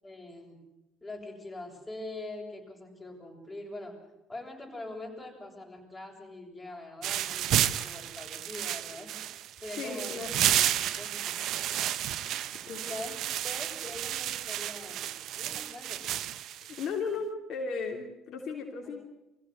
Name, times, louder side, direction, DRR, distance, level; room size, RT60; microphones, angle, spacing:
voice 1, 0.0-0.6 1.0-4.0 4.3-9.2 9.6-10.2 10.5-11.4 12.1-12.3 12.8-13.1 13.4-15.1 15.4-16.0 17.1-17.2, left 2 dB, 15° left, 1 dB, 7.6 m, -43 dB
sound 1, 7.0-16.9, right 12 dB, 65° right, 1.0 m, -31 dB
voice 2, 9.7-10.4 12.2-12.8 16.7-19.0, left 4 dB, 60° left, 1 dB, 3.1 m, -36 dB
23.5 x 16.0 x 8.2 m, 0.94 s
hypercardioid pair, 70°, 0 cm